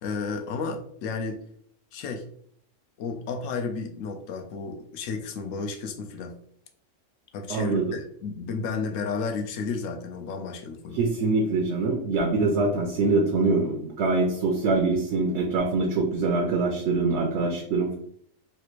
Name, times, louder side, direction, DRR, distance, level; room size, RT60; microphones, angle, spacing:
voice 1, 0.0-1.4 1.9-2.2 3.0-6.4 7.3-11.0, left 4 dB, 80° left, 4 dB, 0.9 m, -32 dB
voice 2, 7.5-7.9 10.9-18.0, right 3 dB, 65° right, 1 dB, 0.8 m, -24 dB
3.3 x 2.5 x 3.0 m, 0.65 s
omnidirectional pair, 1.3 m